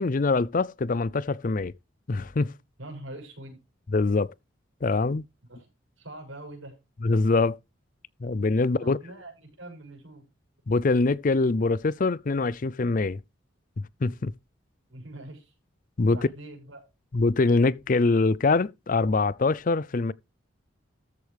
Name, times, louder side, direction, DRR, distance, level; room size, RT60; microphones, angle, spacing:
voice 1, 0.0-1.7 2.1-2.5 3.9-4.3 4.8-5.2 7.0-7.6 8.2-9.0 10.7-13.2 14.0-14.3 16.0-16.2 17.1-20.1, left 3 dB, 45° left, 0.5 m, -24 dB
voice 2, 2.8-3.6 5.5-5.7 6.0-6.7 8.8-10.3 14.9-15.5 16.1-16.8, right 1 dB, 85° right, 6.5 m, -43 dB
13.5 x 8.1 x 3.4 m
head